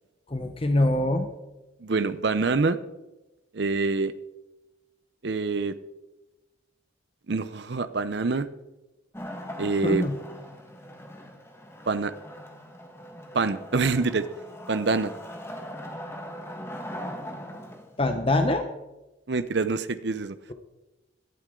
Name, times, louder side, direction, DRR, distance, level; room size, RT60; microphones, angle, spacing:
voice 1, 0.3-1.3 9.8-10.2 18.0-18.7, left 1 dB, 30° left, 7 dB, 0.8 m, -24 dB
voice 2, 1.8-2.8 3.5-4.1 5.2-5.8 7.3-8.5 9.6-10.0 11.9-12.1 13.3-14.3 14.7-15.1 19.3-20.4, right 3 dB, 60° right, 12 dB, 0.6 m, -25 dB
Wood, 9.1-18.0, equal, 15° left, 1.5 m, -40 dB
17.0 x 12.5 x 3.8 m, 1.0 s
head